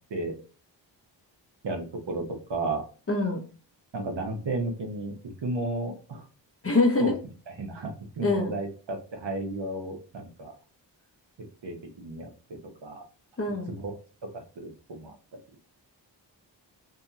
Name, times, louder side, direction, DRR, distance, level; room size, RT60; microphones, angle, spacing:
voice 1, 1.6-2.2 2.5-2.8 3.9-5.1 5.4-6.3 7.0-7.1 7.6-10.5 11.4-13.0 13.7-13.9 14.3-15.4, right 2 dB, 70° right, 3 dB, 0.9 m, -33 dB
voice 2, 3.1-3.4 6.6-7.2 8.2-8.6 13.4-13.7, left 3 dB, 30° left, 2 dB, 0.9 m, -24 dB
2.9 x 2.7 x 2.4 m, 0.36 s
cardioid pair, 50°, 45 cm